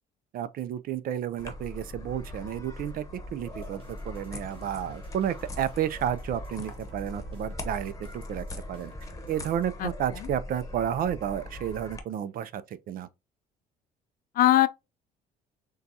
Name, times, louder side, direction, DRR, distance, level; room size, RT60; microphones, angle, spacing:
voice 1, 0.3-3.0 3.3-8.9 9.3-12.6 12.9-13.1, right 10 dB, 60° right, 0.5 m, -31 dB
sound 1, 1.4-12.0, left 2 dB, 20° left, 1.0 m, -41 dB
sound 2, 3.5-9.7, right 3 dB, 30° right, 2.2 m, -52 dB
voice 2, 9.8-10.3 14.4-14.7, left 14 dB, 60° left, 0.4 m, -22 dB
6.5 x 2.3 x 2.8 m
cardioid pair, 110°, 17 cm